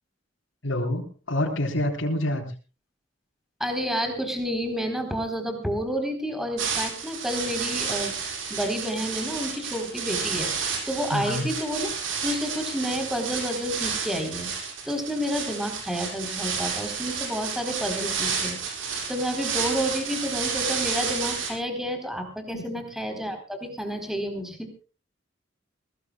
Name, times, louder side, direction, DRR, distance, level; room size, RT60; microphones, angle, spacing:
voice 1, 0.6-2.5 11.1-11.5 22.5-22.6, left 1 dB, 85° left, -2 dB, 4.0 m, -27 dB
voice 2, 3.6-8.1 8.5-11.9 12.2-18.6 19.1-24.7, equal, ahead, 5 dB, 3.9 m, -30 dB
sound 1, 6.6-21.5, right 6 dB, 85° right, 7.1 m, -31 dB
22.5 x 19.0 x 2.3 m, 0.35 s
head